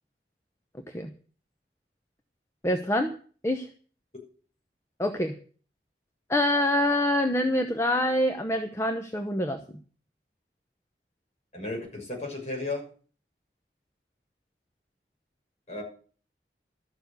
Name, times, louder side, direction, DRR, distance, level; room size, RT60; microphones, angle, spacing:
voice 1, 2.6-3.1 3.4-3.7 5.0-5.4 6.3-9.6, left 1 dB, 15° left, 6 dB, 0.8 m, -25 dB
voice 2, 11.5-12.8 15.7-15.8, left 2 dB, 40° left, -1 dB, 6.6 m, -34 dB
13.0 x 7.0 x 8.3 m, 0.43 s
head